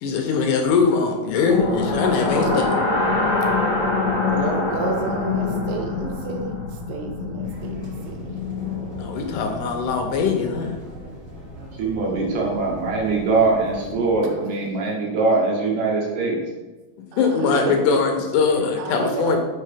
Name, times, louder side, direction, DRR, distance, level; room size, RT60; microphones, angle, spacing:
voice 1, 0.0-2.8 9.0-10.8 17.2-19.4, left 5 dB, 80° left, 3 dB, 2.0 m, -21 dB
sound 1, 1.4-9.4, left 3 dB, 50° left, 1.2 m, -24 dB
voice 2, 4.2-8.3 12.0-12.6 14.2-14.3 17.1-18.0 18.8-19.4, right 5 dB, 80° right, 4 dB, 2.4 m, -31 dB
sound 2, 7.4-14.1, equal, 30° right, 1.8 m, -39 dB
voice 3, 11.8-16.4, right 3 dB, 65° right, -2 dB, 2.1 m, -22 dB
5.5 x 4.2 x 4.9 m, 1.2 s
omnidirectional pair, 3.9 m